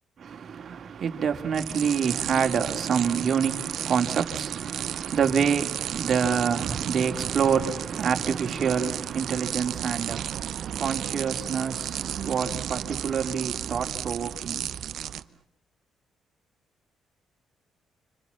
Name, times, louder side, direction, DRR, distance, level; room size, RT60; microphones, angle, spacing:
voice 1, 0.2-14.7, right 7 dB, 55° right, 2.9 m, -27 dB
sound 1, 1.5-15.2, right 10 dB, 70° right, 1.1 m, -33 dB
29.5 x 27.5 x 7.2 m
cardioid pair, 90°, 0 cm